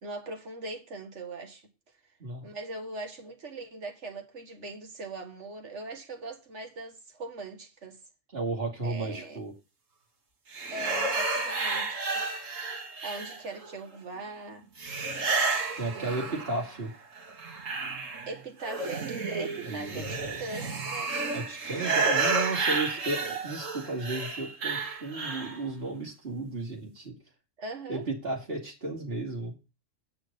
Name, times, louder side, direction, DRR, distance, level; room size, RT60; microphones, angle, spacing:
voice 1, 0.0-1.6 2.4-8.0 8.8-9.4 10.7-12.0 13.0-14.7 16.0-16.4 18.2-21.1 22.1-22.2 27.6-28.0, right 3 dB, 65° right, 2.0 m, -40 dB
voice 2, 8.3-9.5 15.8-16.9 19.7-20.3 21.3-27.2 27.9-29.5, right 3 dB, 50° right, 2.9 m, -34 dB
sound 1, 10.5-13.7 14.8-16.8 17.2-25.6, right 4 dB, 85° right, 2.1 m, -31 dB
9.2 x 6.4 x 5.4 m
omnidirectional pair, 1.3 m